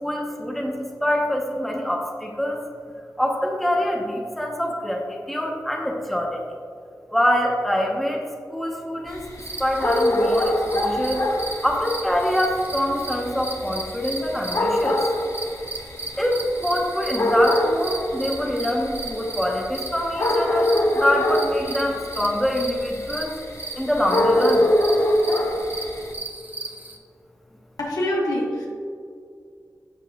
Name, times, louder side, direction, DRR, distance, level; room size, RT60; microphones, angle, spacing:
voice 1, 0.0-2.6 3.2-6.4 7.1-8.2 8.5-9.3 9.6-11.2 11.6-15.0 16.2-20.7 20.9-23.3 23.8-24.7, equal, 5° left, -1 dB, 1.4 m, -25 dB
sound 1, 9.1-26.1, left 1 dB, 55° left, 1.2 m, -25 dB
sound 2, 9.4-27.0, right 2 dB, 25° right, 1.0 m, -36 dB
voice 2, 27.8-28.7, left 1 dB, 75° left, -3 dB, 1.9 m, -24 dB
11.0 x 7.3 x 2.6 m, 2.3 s
cardioid pair, 55°, 7 cm